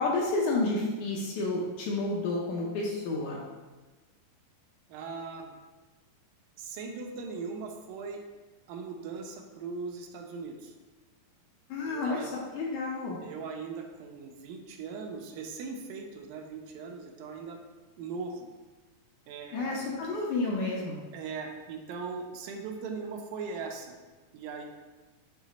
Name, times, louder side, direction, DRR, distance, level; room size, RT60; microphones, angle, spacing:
voice 1, 0.0-3.4 11.7-13.2 19.5-21.0, left 2 dB, 75° left, -3 dB, 1.9 m, -30 dB
voice 2, 4.9-5.6 6.6-8.2 8.7-10.7 11.9-12.3 13.2-17.6 18.0-18.5 19.3-19.9 21.1-24.0 24.3-24.7, right 4 dB, 80° right, 2 dB, 2.3 m, -39 dB
7.3 x 3.2 x 4.0 m, 1.2 s
omnidirectional pair, 4.0 m